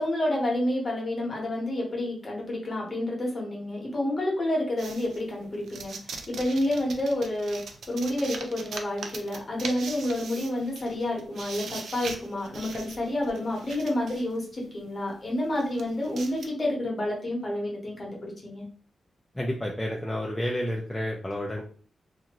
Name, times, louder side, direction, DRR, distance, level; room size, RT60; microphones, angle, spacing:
voice 1, 0.0-5.9 6.3-7.6 7.9-18.6, left 1 dB, 30° left, -2 dB, 0.9 m, -29 dB
sound 1, 4.8-14.4 15.0-15.1 15.5-16.5, right 4 dB, 80° right, 0.4 m, -41 dB
voice 2, 19.4-21.6, equal, 5° left, -2 dB, 0.4 m, -30 dB
2.5 x 2.5 x 2.9 m, 0.42 s
wide cardioid pair, 165°, 0 cm